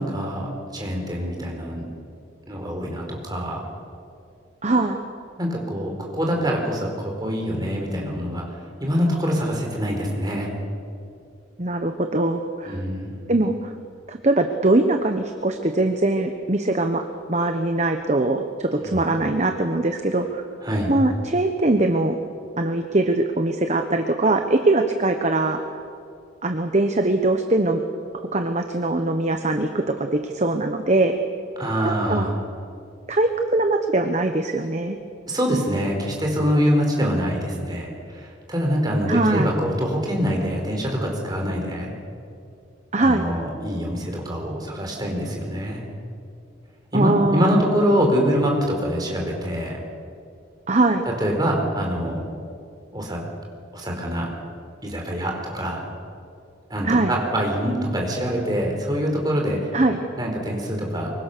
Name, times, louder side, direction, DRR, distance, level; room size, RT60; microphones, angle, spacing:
voice 1, 0.0-1.8 2.4-3.7 5.4-10.5 12.7-13.2 18.8-19.0 20.6-20.9 31.6-32.3 35.3-41.9 43.0-45.8 46.9-49.8 51.1-52.2 52.9-53.2 53.7-54.3 54.8-55.8 56.7-59.7 60.2-61.1, equal, 20° right, 0 dB, 4.4 m, -24 dB
voice 2, 4.6-5.0 11.6-12.8 13.3-13.7 14.1-20.4 20.9-22.2 22.6-25.6 26.4-27.8 28.1-31.2 32.1-32.3 33.1-35.0 39.1-39.5 42.9-43.2 46.9-47.8 50.7-51.0 56.8-57.2 59.7-60.0, right 2 dB, 35° right, 5 dB, 1.1 m, -22 dB
24.5 x 23.0 x 6.8 m, 2.4 s
head